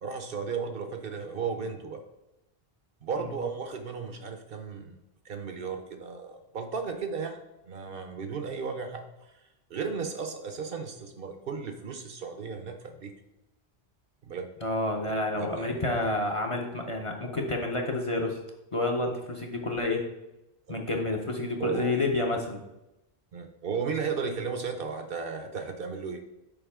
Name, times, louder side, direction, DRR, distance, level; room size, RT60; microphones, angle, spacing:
voice 1, 0.0-2.0 3.0-5.0 5.2-7.4 7.7-9.1 9.7-13.1 14.2-14.5 15.0-15.8 20.7-20.8 21.6-21.9 23.3-26.2, right 5 dB, 60° right, 6 dB, 0.8 m, -35 dB
voice 2, 14.6-18.4 18.7-20.0 20.7-22.6, left 2 dB, 35° left, 1 dB, 0.7 m, -29 dB
7.1 x 4.6 x 3.5 m, 0.92 s
omnidirectional pair, 1.1 m